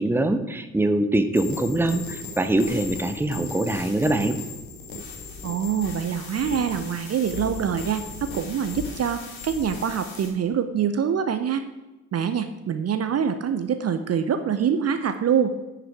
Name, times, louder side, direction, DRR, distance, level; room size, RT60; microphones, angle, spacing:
voice 1, 0.0-4.4, right 1 dB, 5° right, 9 dB, 0.9 m, -23 dB
sound 1, 1.4-10.3, left 3 dB, 70° left, 2.0 m, -37 dB
voice 2, 5.4-11.6 12.1-15.5, right 7 dB, 35° right, 9 dB, 0.8 m, -25 dB
9.9 x 6.8 x 4.7 m, 1.0 s
figure-of-eight pair, 45°, 41 cm